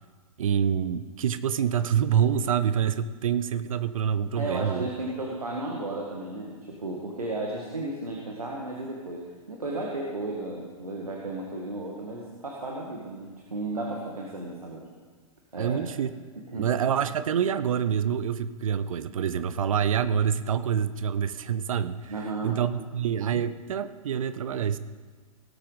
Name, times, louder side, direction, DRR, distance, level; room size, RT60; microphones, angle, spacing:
voice 1, 0.4-4.9 15.6-16.1 16.5-22.1 22.4-24.8, right 8 dB, 65° right, 13 dB, 0.7 m, -26 dB
voice 2, 4.3-9.2 9.5-14.8 15.5-15.8 16.4-16.7 22.1-22.6, right 2 dB, 85° right, -2 dB, 1.8 m, -34 dB
18.5 x 8.5 x 4.0 m, 1.4 s
figure-of-eight pair, 110°, 18 cm